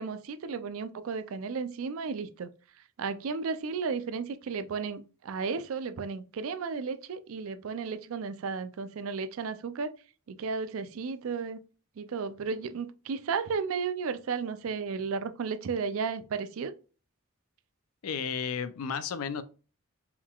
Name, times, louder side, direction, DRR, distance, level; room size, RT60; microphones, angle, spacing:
voice 1, 0.0-2.5 3.0-9.9 10.3-11.6 12.0-16.7, right 5 dB, 70° right, 0.4 m, -34 dB
voice 2, 18.0-19.4, left 6 dB, 85° left, 0.5 m, -33 dB
4.6 x 3.7 x 2.3 m
head